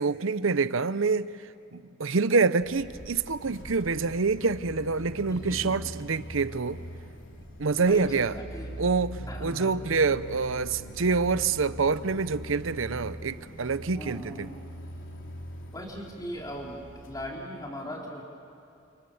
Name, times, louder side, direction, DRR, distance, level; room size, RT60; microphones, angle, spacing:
voice 1, 0.0-1.3 1.7-6.8 7.6-8.4 8.8-14.5, right 4 dB, 85° right, 0.8 m, -26 dB
sound 1, 2.6-17.3, equal, 75° left, 3.1 m, -42 dB
voice 2, 5.3-5.7 7.8-8.8 9.3-9.7 13.9-14.5 15.7-18.2, equal, 20° left, 4.1 m, -39 dB
29.5 x 27.5 x 7.2 m
head